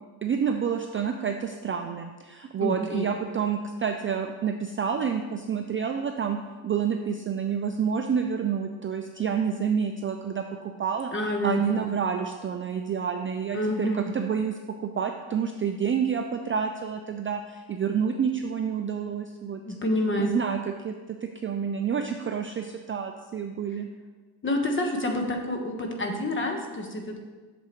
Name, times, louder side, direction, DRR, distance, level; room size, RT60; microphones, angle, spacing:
voice 1, 0.2-6.4 6.6-11.1 11.4-14.5 14.8-19.6 20.2-20.9 21.2-23.9, right 7 dB, 30° right, 4 dB, 0.4 m, -28 dB
voice 2, 2.6-3.1 11.1-11.9 13.5-14.0 19.6-20.5 24.4-27.2, left 1 dB, 25° left, 3 dB, 1.2 m, -28 dB
8.1 x 6.8 x 3.1 m, 1.3 s
cardioid pair, 95°, 48 cm